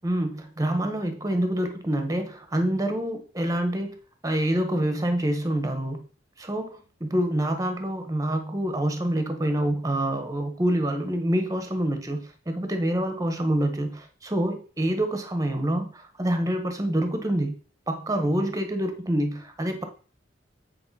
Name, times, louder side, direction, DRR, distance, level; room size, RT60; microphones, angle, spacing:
voice 1, 0.0-4.0 4.2-6.0 6.4-17.5 17.9-19.8, right 1 dB, 20° right, 7 dB, 1.1 m, -26 dB
8.7 x 4.8 x 4.1 m, 0.40 s
head